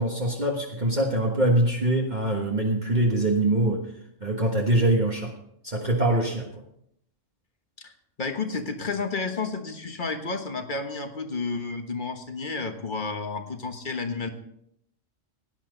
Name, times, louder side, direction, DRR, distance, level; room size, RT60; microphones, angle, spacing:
voice 1, 0.0-3.8 4.2-5.3 5.6-6.5, right 1 dB, 35° right, -1 dB, 1.5 m, -23 dB
voice 2, 8.2-14.3, left 4 dB, 40° left, 6 dB, 1.4 m, -31 dB
17.0 x 10.5 x 3.9 m, 0.73 s
omnidirectional pair, 1.3 m